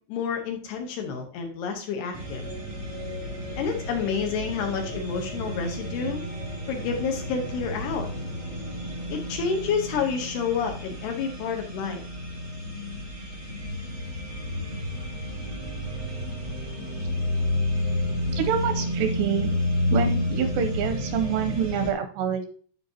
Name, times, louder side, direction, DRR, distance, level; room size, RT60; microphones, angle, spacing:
voice 1, 0.0-2.4 3.6-6.2 6.7-8.1 9.1-12.0, left 6 dB, 75° left, 4 dB, 2.6 m, -29 dB
sound 1, 2.1-21.9, left 1 dB, 35° right, 1.0 m, -31 dB
voice 2, 18.3-19.5 19.9-22.5, right 7 dB, 85° right, 7 dB, 2.6 m, -26 dB
11.5 x 5.1 x 2.8 m, 0.43 s
omnidirectional pair, 5.3 m